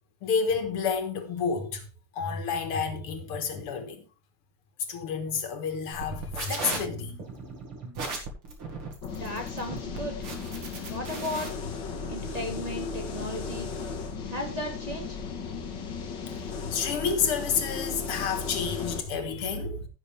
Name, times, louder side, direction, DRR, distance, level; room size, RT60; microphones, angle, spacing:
voice 1, 0.2-1.9 2.1-4.0 4.9-7.2 16.7-19.9, left 6 dB, 85° left, 2.4 m, -30 dB
sound 1, 5.9-11.5, right 3 dB, 75° right, 2.9 m, -37 dB
sound 2, 9.0-19.0, left 5 dB, 55° left, 2.0 m, -36 dB
voice 2, 9.1-10.2 10.9-11.5 12.1-13.7 14.3-15.2, equal, 20° right, 1.6 m, -35 dB
15.5 x 6.8 x 3.4 m
omnidirectional pair, 2.4 m